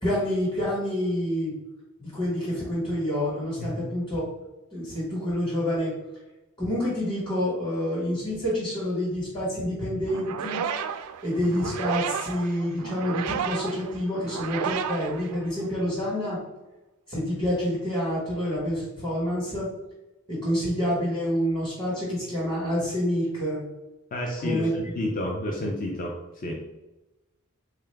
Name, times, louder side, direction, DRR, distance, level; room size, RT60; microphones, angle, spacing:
voice 1, 0.0-1.5 2.0-4.3 4.7-5.9 6.6-10.6 11.2-16.4 17.1-19.7 20.3-23.6 24.4-24.7, equal, 20° left, -7 dB, 1.2 m, -27 dB
sound 1, 10.1-15.9, right 7 dB, 80° right, 0.3 m, -32 dB
voice 2, 24.1-26.5, left 1 dB, 40° left, 0 dB, 0.4 m, -30 dB
3.7 x 2.4 x 3.2 m, 1.0 s
head